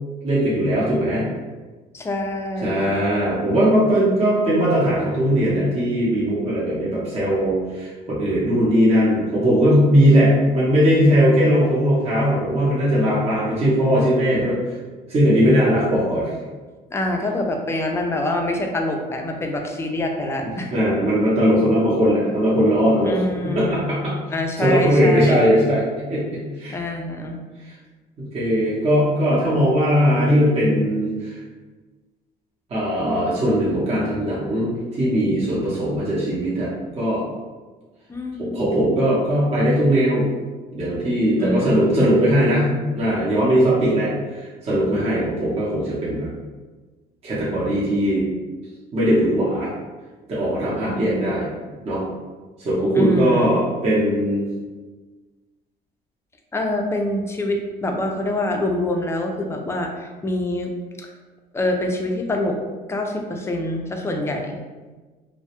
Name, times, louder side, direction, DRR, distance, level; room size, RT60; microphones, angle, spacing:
voice 1, 0.2-1.2 2.6-14.6 15.1-16.3 20.7-23.2 23.4-24.2 24.6-25.8 26.1-26.8 27.7-27.8 28.2-31.4 32.7-36.7 37.0-37.2 38.4-40.2 40.7-42.7 42.9-46.3 47.2-48.3 48.9-49.7 50.3-51.5 51.9-52.0 52.6-54.5, equal, 35° right, -8 dB, 0.7 m, -19 dB
voice 2, 1.9-2.9 16.9-20.7 23.0-23.8 24.3-25.5 26.7-27.4 38.1-38.6 41.4-42.2 50.8-51.4 52.9-53.6 56.5-60.7 61.0-61.1 61.5-62.6 62.9-64.6, left 1 dB, 15° left, 2 dB, 0.3 m, -25 dB
2.1 x 2.0 x 2.8 m, 1.3 s
cardioid pair, 110°, 17 cm